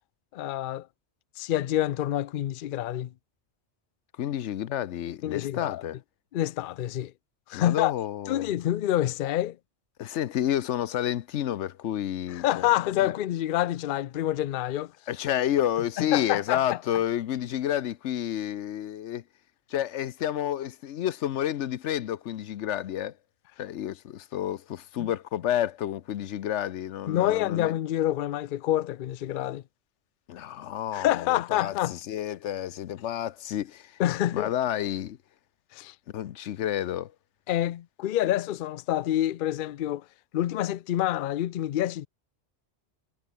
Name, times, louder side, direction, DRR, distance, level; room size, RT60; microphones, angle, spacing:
voice 1, 0.3-0.9 1.4-3.1 5.2-5.8 6.3-7.1 7.5-7.9 8.3-9.6 12.3-14.9 16.0-16.8 25.0-25.1 27.1-29.6 30.9-32.0 34.0-34.5 35.7-35.9 37.5-40.0 40.3-42.1, left 13 dB, 60° left, 0.6 m, -27 dB
voice 2, 4.2-6.0 7.5-8.5 10.0-12.7 13.0-13.1 15.1-19.2 19.7-23.1 23.6-27.7 30.3-33.9 34.3-35.2 36.1-37.1, left 11 dB, 85° left, 1.0 m, -30 dB
omnidirectional pair, 1.2 m